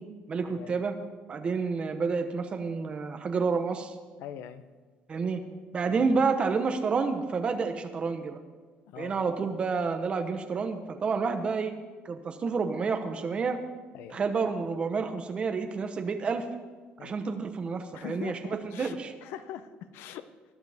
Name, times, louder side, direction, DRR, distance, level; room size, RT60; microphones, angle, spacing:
voice 1, 0.3-0.9 1.3-3.9 5.1-5.4 5.7-8.4 9.0-11.7 12.0-13.6 14.1-16.4 17.0-19.1, right 5 dB, 30° right, 6 dB, 1.0 m, -29 dB
voice 2, 4.2-4.6 5.9-6.0 8.9-9.3 13.9-14.2 17.0-17.2 17.9-20.3, left 9 dB, 85° left, 12 dB, 0.8 m, -42 dB
20.5 x 12.0 x 3.5 m, 1.4 s
cardioid pair, 160°, 4 cm